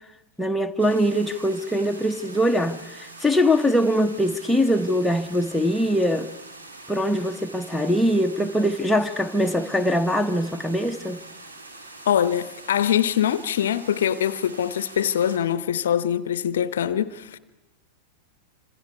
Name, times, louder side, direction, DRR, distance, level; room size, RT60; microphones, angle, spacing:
voice 1, 0.4-6.3 6.9-11.2, equal, ahead, 1.2 m, -22 dB
sound 1, 0.8-15.4, right 2 dB, 75° right, 3.1 m, -44 dB
voice 2, 12.1-17.4, left 9 dB, 60° left, 0.8 m, -23 dB
26.5 x 26.0 x 4.7 m
figure-of-eight pair, 90°, 0 cm